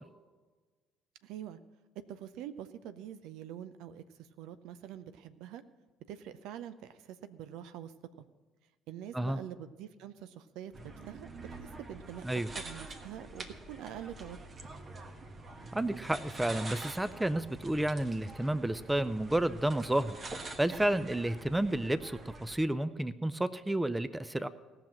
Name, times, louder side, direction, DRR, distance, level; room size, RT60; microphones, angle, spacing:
voice 1, 1.2-1.6 2.1-5.6 6.1-7.9 8.9-10.7 11.1-12.2 12.6-14.4, right 10 dB, 65° right, 12 dB, 0.6 m, -45 dB
sound 1, 10.7-22.6, right 2 dB, 35° right, 1.4 m, -46 dB
voice 2, 15.7-20.2 20.6-24.5, right 1 dB, 10° right, 15 dB, 0.6 m, -31 dB
17.0 x 6.0 x 7.5 m, 1.3 s
hypercardioid pair, 55°, 0 cm